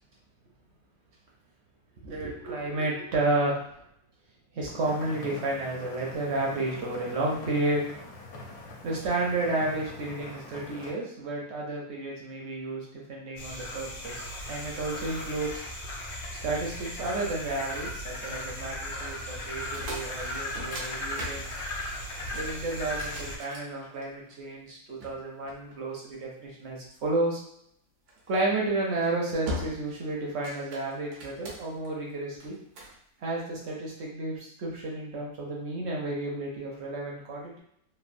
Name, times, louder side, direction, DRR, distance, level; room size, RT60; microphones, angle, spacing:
voice 1, 2.0-3.7 4.5-7.8 8.8-15.6 16.4-21.5 22.3-27.4 28.3-32.6 33.2-37.6, right 2 dB, 60° right, -3 dB, 0.8 m, -31 dB
sound 1, 4.8-10.9, left 3 dB, 80° left, 1.2 m, -44 dB
sound 2, 13.4-23.4, left 1 dB, 60° left, 0.8 m, -37 dB
sound 3, 19.6-24.3 25.0-26.3 28.1-28.4 28.9-29.1 29.5-30.0 30.3-31.9 32.4-33.0, equal, 85° right, 1.3 m, -40 dB
3.2 x 2.1 x 2.5 m, 0.72 s
omnidirectional pair, 1.6 m